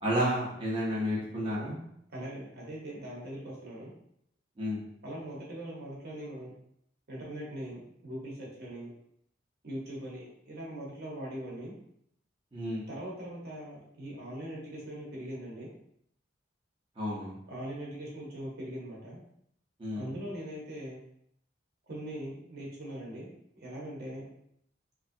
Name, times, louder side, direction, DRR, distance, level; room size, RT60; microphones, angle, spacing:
voice 1, 0.0-1.7 4.6-4.8 12.5-12.9 17.0-17.4 19.8-20.1, equal, 30° right, -7 dB, 0.7 m, -31 dB
voice 2, 2.1-3.9 5.0-6.5 7.1-8.9 9.6-11.7 12.9-15.7 17.5-19.2 19.9-21.0 21.9-24.3, right 1 dB, 60° right, -4 dB, 1.0 m, -41 dB
3.1 x 2.6 x 2.6 m, 0.71 s
head